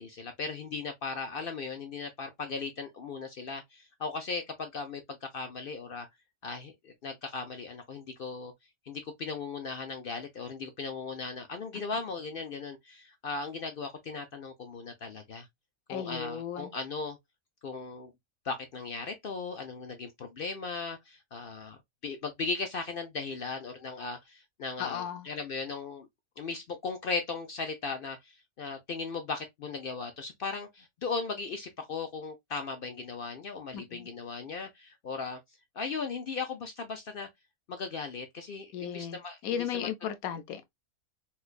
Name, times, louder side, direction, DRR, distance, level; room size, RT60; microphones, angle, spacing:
voice 1, 0.0-6.1 6.4-8.5 8.9-15.5 15.9-17.2 17.6-18.1 18.4-26.1 26.4-35.4 35.8-37.3 37.7-39.9, left 4 dB, 65° left, 0.5 m, -37 dB
voice 2, 15.9-16.7 24.8-25.3 33.7-34.1 38.7-39.2 39.4-40.6, left 9 dB, 90° left, 1.1 m, -35 dB
4.4 x 2.3 x 2.3 m
omnidirectional pair, 1.5 m